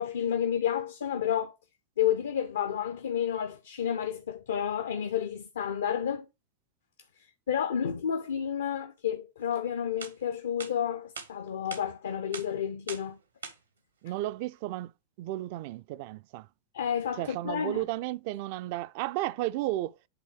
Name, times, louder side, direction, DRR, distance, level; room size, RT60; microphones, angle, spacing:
voice 1, 0.0-1.5 2.0-6.3 7.5-13.2 16.7-17.8, left 9 dB, 65° left, 0.5 m, -30 dB
sound 1, 9.5-9.6 10.0-10.1 10.6-10.7 11.2-11.3 11.7-11.8 12.3-12.5 12.9-13.1 13.4-13.5, right 5 dB, 75° right, 1.0 m, -40 dB
voice 2, 14.0-14.9 15.2-16.5 17.2-20.1, right 16 dB, 45° right, 0.3 m, -33 dB
8.0 x 3.1 x 4.7 m
figure-of-eight pair, 90°, 0 cm